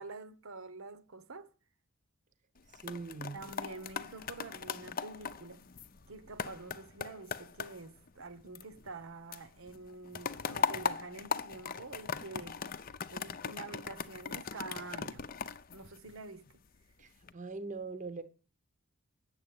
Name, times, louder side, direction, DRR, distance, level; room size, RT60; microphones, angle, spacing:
voice 1, 0.0-1.5 3.3-5.6 6.1-12.6 13.1-15.2 15.7-16.6, right 3 dB, 70° right, 1.0 m, -47 dB
sound 1, 2.6-9.0 9.3-16.5 17.0-17.3, left 6 dB, 40° left, 0.6 m, -39 dB
voice 2, 2.8-3.4 17.0-18.2, right 3 dB, 35° right, 0.8 m, -41 dB
8.9 x 7.5 x 8.6 m
head